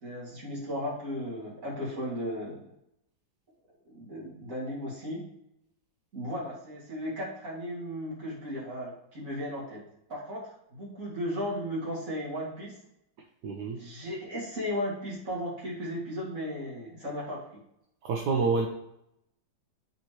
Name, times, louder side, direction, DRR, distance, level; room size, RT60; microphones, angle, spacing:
voice 1, 0.0-2.7 3.9-5.2 6.1-9.8 10.1-12.7 13.7-17.4, equal, 45° right, -5 dB, 2.8 m, -35 dB
voice 2, 13.4-13.8 18.0-18.7, right 4 dB, 70° right, 1 dB, 1.2 m, -27 dB
9.3 x 4.3 x 3.1 m, 0.79 s
omnidirectional pair, 1.9 m